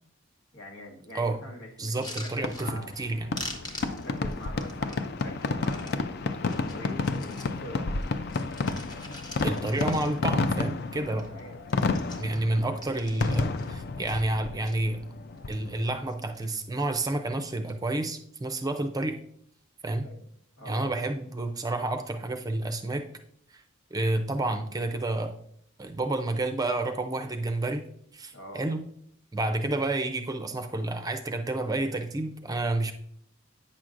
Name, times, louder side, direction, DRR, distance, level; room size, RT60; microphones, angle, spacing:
voice 1, 0.5-3.1 3.8-8.2 11.1-11.7 12.1-12.2 20.0-20.3 20.6-20.8 28.3-28.7, left 1 dB, 85° left, 1 dB, 1.3 m, -45 dB
sound 1, 1.8-3.1 3.3-6.0 6.4-7.6 8.0-10.4 10.8-10.9 11.1-11.4 11.6-13.7 14.0-14.7 15.3-15.8 16.1-16.6 17.4-17.7, left 1 dB, 20° left, 0.8 m, -44 dB
voice 2, 1.8-3.3 9.4-11.3 12.2-15.0 15.5-19.2 19.8-20.1 20.7-23.0 23.5-23.6 23.9-25.3 25.8-27.8 28.1-28.8 29.3-32.9, right 2 dB, 20° right, 7 dB, 0.5 m, -30 dB
Fireworks, 2.4-15.9, left 3 dB, 50° left, 0.4 m, -31 dB
8.7 x 6.0 x 2.5 m, 0.65 s
head